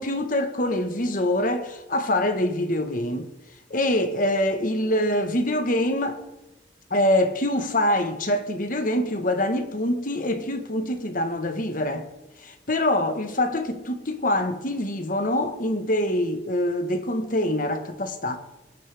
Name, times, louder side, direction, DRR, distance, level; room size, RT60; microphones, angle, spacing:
voice 1, 0.0-3.3 3.7-6.2 6.9-12.1 12.4-18.4, left 1 dB, 45° left, 1.5 m, -25 dB
21.0 x 10.0 x 3.6 m
head